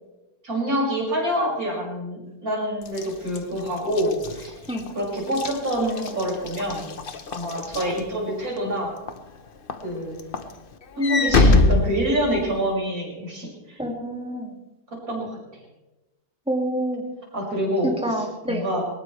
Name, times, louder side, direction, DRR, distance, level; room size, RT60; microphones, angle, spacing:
voice 1, 0.4-4.5 4.9-6.9 7.3-9.0 9.8-10.2 11.0-13.8 15.1-15.4 17.3-18.8, equal, 50° right, -4 dB, 6.6 m, -26 dB
Walk footsteps / Slam, 2.8-8.6 9.1-9.4 9.7-12.7, left 3 dB, 40° left, 0.9 m, -24 dB
voice 2, 13.8-14.5 16.5-17.1 17.8-18.6, right 1 dB, 5° right, 1 dB, 2.2 m, -27 dB
21.5 x 20.0 x 3.3 m, 1.0 s
omnidirectional pair, 1.9 m